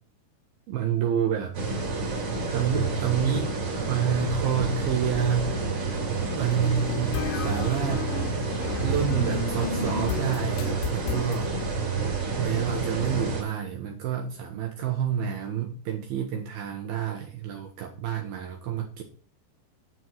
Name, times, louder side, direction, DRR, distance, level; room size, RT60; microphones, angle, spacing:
voice 1, 0.7-1.6 2.5-5.5 6.1-8.1 8.8-11.5 12.4-19.0, right 8 dB, 70° right, 2 dB, 2.8 m, -28 dB
sound 1, 1.5-13.4, right 4 dB, 35° right, 3.7 m, -29 dB
sound 2, 6.5-11.4, left 7 dB, 80° left, 3.5 m, -33 dB
9.8 x 4.7 x 7.7 m, 0.42 s
omnidirectional pair, 4.8 m